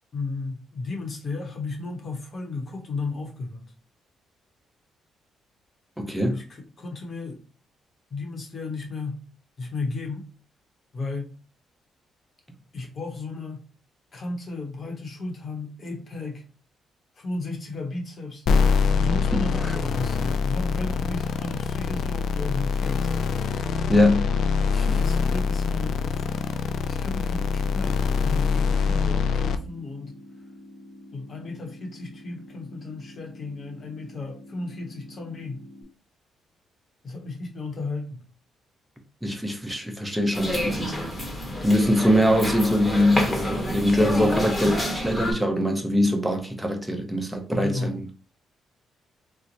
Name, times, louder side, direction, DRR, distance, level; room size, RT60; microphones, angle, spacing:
voice 1, 0.1-3.7 6.3-7.4 8.1-9.2 9.6-10.3 10.9-11.3 12.7-13.7 14.1-16.4 17.1-18.5 18.9-23.1 24.8-26.2 26.9-30.2 31.1-35.6 37.0-38.2 44.1-44.4 47.5-48.1, left 3 dB, 45° left, 0.9 m, -34 dB
voice 2, 6.0-6.4 19.3-19.8 23.9-24.3 24.7-25.0 39.2-40.9 41.6-48.0, left 1 dB, 5° right, 0.7 m, -23 dB
sound 1, 18.5-29.6, left 5 dB, 65° left, 0.4 m, -24 dB
sound 2, 25.8-35.8, left 1 dB, 55° right, 1.2 m, -47 dB
sound 3, 40.3-45.3, equal, 15° left, 1.1 m, -29 dB
2.9 x 2.1 x 3.9 m
cardioid pair, 90°, 0 cm